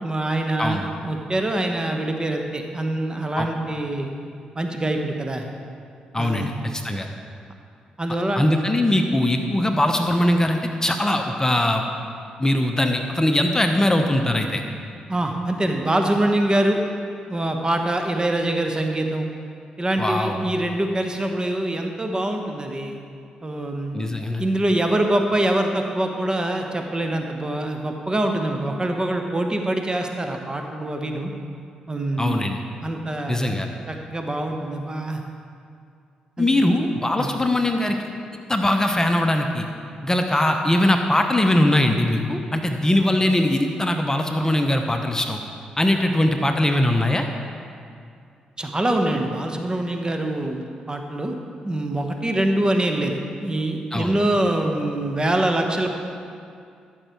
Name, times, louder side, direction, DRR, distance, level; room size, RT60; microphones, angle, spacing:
voice 1, 0.0-4.1 4.5-5.4 6.2-6.5 8.0-8.4 15.1-16.8 17.3-19.3 19.8-23.0 23.4-24.0 24.4-31.3 31.9-32.4 32.8-33.6 33.9-35.2 36.4-36.8 37.2-37.3 48.6-51.4 51.6-55.9, right 1 dB, 25° right, 4 dB, 1.2 m, -24 dB
voice 2, 6.1-7.1 8.4-11.9 12.4-14.6 20.0-20.3 23.9-24.4 32.2-32.6 33.3-33.7 36.4-38.0 38.5-39.7 40.0-45.4 45.8-47.3 53.9-54.1, left 1 dB, 20° left, 4 dB, 0.9 m, -21 dB
13.5 x 6.6 x 4.5 m, 2.4 s
hypercardioid pair, 40°, 3 cm